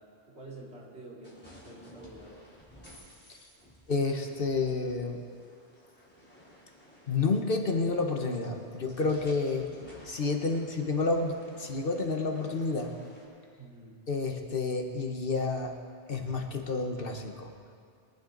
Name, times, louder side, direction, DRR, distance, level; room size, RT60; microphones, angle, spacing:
voice 1, 0.0-2.4 10.4-10.6 13.6-14.0, right 2 dB, 70° right, -6 dB, 3.3 m, -49 dB
sound 1, 1.2-13.2, equal, 10° left, 3.2 m, -55 dB
voice 2, 3.9-5.2 7.1-9.7 10.0-12.9 14.1-15.7 16.1-17.5, left 3 dB, 55° left, 4 dB, 1.3 m, -30 dB
23.0 x 11.5 x 3.9 m, 2.3 s
omnidirectional pair, 1.1 m